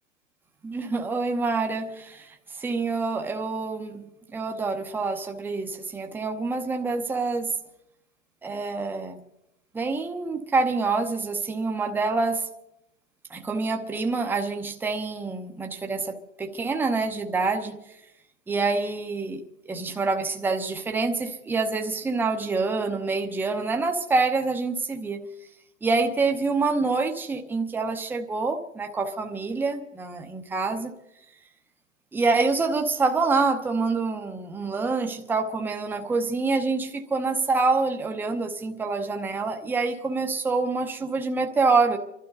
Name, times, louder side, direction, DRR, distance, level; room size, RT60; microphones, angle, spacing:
voice 1, 0.6-7.5 8.4-9.2 9.7-12.5 13.3-17.8 18.5-19.4 19.7-25.2 25.8-30.9 32.1-42.0, right 3 dB, 5° right, 4 dB, 0.8 m, -26 dB
29.0 x 12.5 x 4.0 m, 0.86 s
hypercardioid pair, 145°, 36 cm